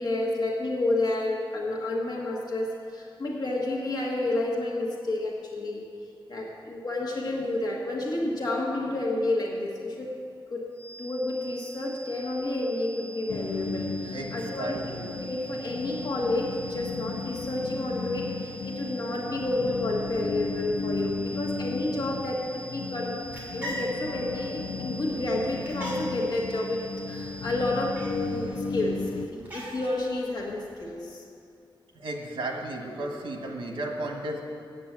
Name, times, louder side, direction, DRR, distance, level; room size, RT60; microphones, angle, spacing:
voice 1, 0.0-5.9 6.3-10.2 10.5-10.7 11.0-14.8 15.2-23.2 23.5-31.2, left 2 dB, 50° left, -2 dB, 1.5 m, -30 dB
sound 1, 10.7-28.5, right 3 dB, 10° left, 2.0 m, -45 dB
sound 2, 13.3-29.3, left 4 dB, 80° left, 0.5 m, -35 dB
voice 2, 14.1-15.1 31.9-34.4, right 1 dB, 75° right, 1 dB, 1.6 m, -34 dB
sound 3, 23.0-30.8, equal, 20° right, 2.8 m, -43 dB
8.7 x 8.2 x 7.3 m, 2.5 s
wide cardioid pair, 165°, 9 cm